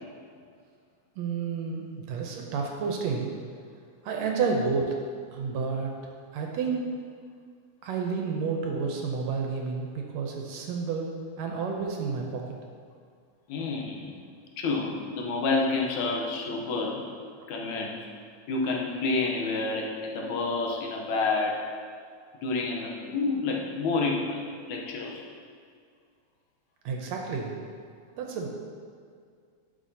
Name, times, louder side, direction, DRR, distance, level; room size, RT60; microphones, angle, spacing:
voice 1, 1.2-3.3 4.0-4.9 5.3-5.9 6.3-6.9 7.8-11.1 11.4-12.4 26.9-27.5 28.2-28.5, right 5 dB, 75° right, 1 dB, 1.8 m, -30 dB
voice 2, 13.5-14.1 14.6-17.0 17.5-18.0 18.5-21.6 22.4-24.4 24.7-25.2, left 3 dB, 75° left, -1 dB, 2.2 m, -29 dB
11.5 x 5.8 x 2.8 m, 2.2 s
omnidirectional pair, 3.4 m